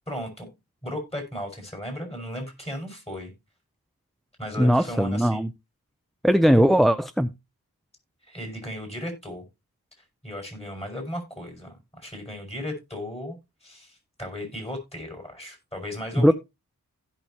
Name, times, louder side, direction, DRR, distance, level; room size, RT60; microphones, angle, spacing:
voice 1, 0.1-0.5 0.8-3.3 4.4-5.4 6.5-6.7 8.3-9.4 10.2-13.4 13.6-16.3, left 1 dB, 15° left, 5.6 m, -36 dB
voice 2, 4.6-5.5 6.2-7.3 16.2-16.3, equal, ahead, 0.4 m, -19 dB
16.0 x 6.1 x 2.8 m
wide cardioid pair, 55°, 37 cm